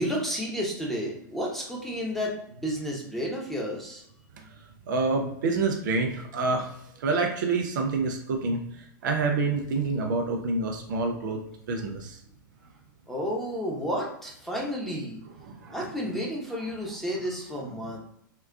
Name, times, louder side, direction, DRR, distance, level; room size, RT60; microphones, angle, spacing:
voice 1, 0.0-4.0 13.1-15.2 15.7-18.0, equal, ahead, -3 dB, 0.9 m, -31 dB
voice 2, 4.9-6.7 7.0-11.4 11.7-12.2 15.5-15.8 17.8-18.0, right 3 dB, 65° right, 2 dB, 0.6 m, -27 dB
3.8 x 2.3 x 2.3 m, 0.72 s
hypercardioid pair, 100°, 11 cm